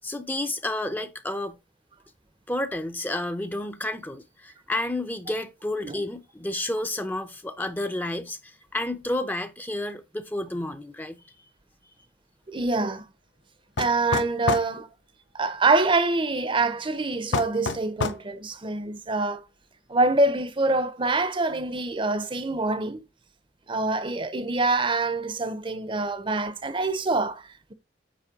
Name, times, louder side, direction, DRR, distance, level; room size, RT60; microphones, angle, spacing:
voice 1, 0.0-1.6 2.5-11.2, left 1 dB, 10° left, 0.7 m, -31 dB
voice 2, 12.5-13.0 13.8-14.9 15.3-19.4 19.9-23.0 23.7-27.7, right 3 dB, 30° right, 0.7 m, -25 dB
sound 1, 13.8-14.7 17.3-18.3, left 4 dB, 85° left, 0.7 m, -27 dB
9.2 x 3.2 x 5.0 m
head